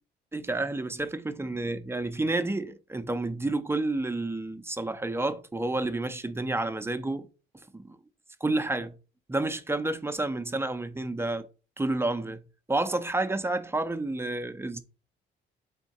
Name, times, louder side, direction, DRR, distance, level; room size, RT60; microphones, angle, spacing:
voice 1, 0.3-7.3 7.7-8.0 8.4-9.0 9.3-11.5 11.8-12.4 12.7-14.8, right 2 dB, 10° right, 0.5 m, -30 dB
3.6 x 3.6 x 4.1 m
cardioid pair, 90°, 20 cm